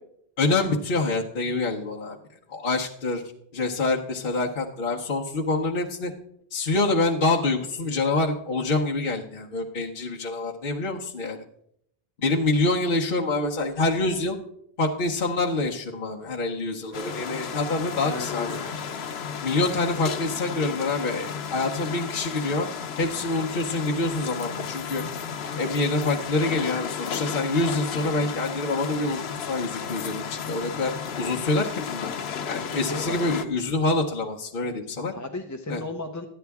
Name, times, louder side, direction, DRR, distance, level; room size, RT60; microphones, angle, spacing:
voice 1, 0.4-2.2 2.5-3.2 3.5-6.1 6.5-11.4 12.2-14.4 14.8-18.7 19.4-22.7 23.0-25.0 25.6-32.1 32.4-35.1 35.7-35.8, left 2 dB, 60° left, -3 dB, 1.0 m, -26 dB
sound 1, 16.8-21.2 21.5-22.3, right 1 dB, 60° right, 4.3 m, -46 dB
sound 2, 16.9-33.4, left 7 dB, 90° left, 1.0 m, -33 dB
voice 2, 32.5-33.2 35.1-36.3, left 2 dB, 20° left, 3 dB, 0.6 m, -34 dB
12.0 x 9.4 x 3.5 m, 0.72 s
omnidirectional pair, 1.0 m